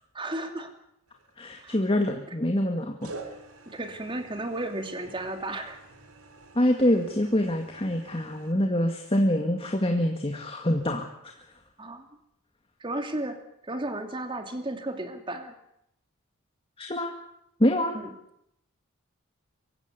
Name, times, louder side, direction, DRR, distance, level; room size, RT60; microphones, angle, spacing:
voice 1, 0.1-0.7 1.6-1.7 2.3-2.4 3.7-5.8 11.8-12.0 12.8-13.4 13.6-15.5 17.9-18.1, right 1 dB, 20° right, 6 dB, 2.7 m, -34 dB
sound 1, 1.1-1.7 3.0-8.5, right 3 dB, 80° right, 3.6 m, -47 dB
voice 2, 1.4-3.1 6.6-11.1 16.8-17.1 17.6-18.0, left 1 dB, 25° left, 3 dB, 2.0 m, -25 dB
24.5 x 15.0 x 9.6 m, 0.78 s
head